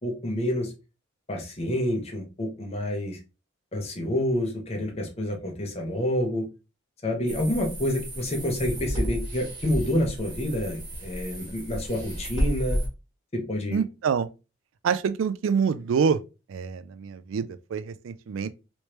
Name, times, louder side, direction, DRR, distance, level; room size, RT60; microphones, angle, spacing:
voice 1, 0.0-0.7 1.3-3.2 3.7-6.5 7.0-12.8 13.3-13.8, left 1 dB, 30° left, 0.9 m, -28 dB
sound 1, 7.3-12.9, equal, 25° right, 1.3 m, -32 dB
voice 2, 13.7-14.3 14.8-16.2 16.5-18.5, right 6 dB, 90° right, 0.4 m, -26 dB
3.2 x 3.1 x 2.9 m
head